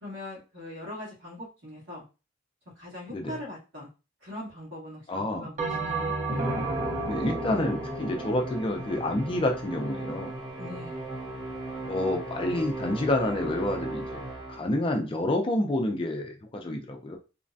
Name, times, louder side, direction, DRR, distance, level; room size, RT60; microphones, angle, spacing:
voice 1, 0.0-2.0 2.8-3.9 4.2-6.1 10.6-11.0, left 1 dB, 70° right, -5 dB, 1.7 m, -41 dB
voice 2, 5.1-5.5 7.1-10.3 11.9-14.2 14.5-17.2, left 1 dB, 25° left, 3 dB, 0.4 m, -28 dB
Bell, 5.6-10.2, right 2 dB, 35° right, 0.5 m, -33 dB
Musical instrument, 6.3-14.8, right 1 dB, 15° right, 0.9 m, -37 dB
3.2 x 2.1 x 2.5 m, 0.31 s
head